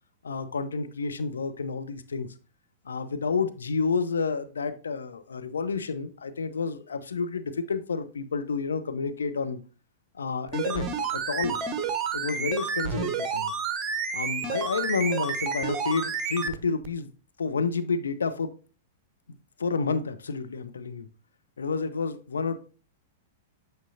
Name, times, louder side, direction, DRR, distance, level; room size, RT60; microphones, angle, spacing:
voice 1, 0.2-2.3 2.8-9.6 10.1-10.9 11.1-11.6 12.1-13.5 14.1-17.1 17.4-18.5 19.6-21.1 21.6-22.6, left 4 dB, 70° left, 0.7 m, -30 dB
sound 1, 10.5-16.6 16.8-16.9, right 5 dB, 25° right, 0.8 m, -30 dB
8.8 x 5.2 x 2.7 m
figure-of-eight pair, 100°, 0 cm